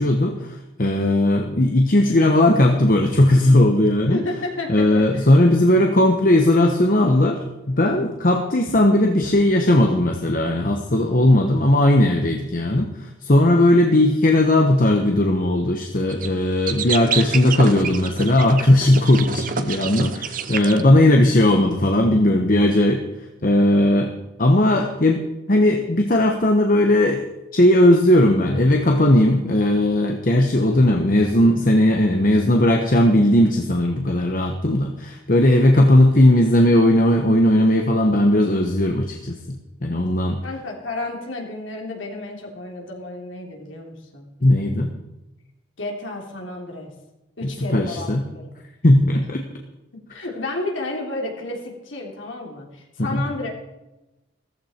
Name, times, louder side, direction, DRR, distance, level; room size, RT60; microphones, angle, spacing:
voice 1, 0.0-4.2 4.7-23.0 23.4-24.1 24.4-25.2 25.5-27.2 27.5-40.4 44.4-44.9 47.4-48.3 48.8-49.4 53.0-53.3, left 1 dB, 45° left, 3 dB, 1.1 m, -17 dB
voice 2, 4.1-5.2 40.4-44.3 45.8-46.9 47.4-48.5 50.1-53.5, left 2 dB, 80° left, 0 dB, 3.1 m, -31 dB
sound 1, 16.1-16.3 16.7-20.8, right 6 dB, 45° right, 0.8 m, -28 dB
14.5 x 14.5 x 4.4 m, 0.99 s
head